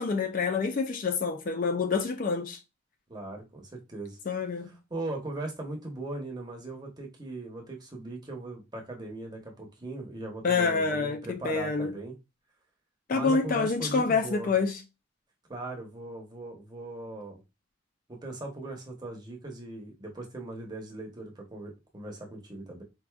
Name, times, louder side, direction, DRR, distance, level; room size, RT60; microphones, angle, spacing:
voice 1, 0.0-2.6 4.3-4.7 10.4-11.9 13.1-14.8, left 4 dB, 40° left, 0.4 m, -27 dB
voice 2, 3.1-4.2 4.6-12.1 13.1-14.5 15.5-17.4 18.1-22.8, right 2 dB, 20° right, 0.8 m, -39 dB
4.5 x 2.5 x 2.3 m
head